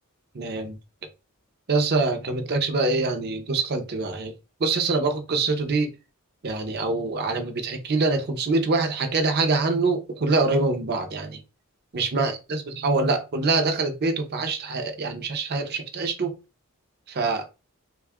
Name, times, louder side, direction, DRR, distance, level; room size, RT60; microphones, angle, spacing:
voice 1, 0.3-0.8 1.7-4.3 4.6-5.9 6.4-11.4 11.9-16.3 17.1-17.4, right 3 dB, 50° right, 0.6 m, -25 dB
3.5 x 2.3 x 3.5 m
head